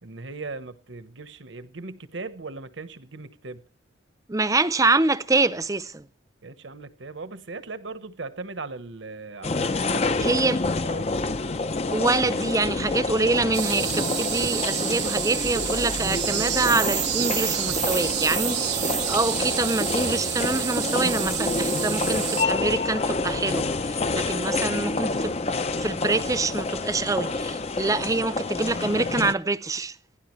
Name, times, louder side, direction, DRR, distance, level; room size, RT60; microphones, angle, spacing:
voice 1, 0.0-3.6 6.4-10.4 10.8-11.1 24.2-25.0, right 3 dB, 80° right, 1.1 m, -38 dB
voice 2, 4.3-6.1 10.2-10.6 11.9-25.4 25.8-30.0, right 3 dB, 20° right, 0.6 m, -25 dB
sound 1, 9.4-29.3, left 3 dB, 35° left, 0.6 m, -28 dB
sound 2, 13.5-22.5, right 14 dB, 60° right, 0.8 m, -29 dB
28.5 x 10.0 x 3.2 m
head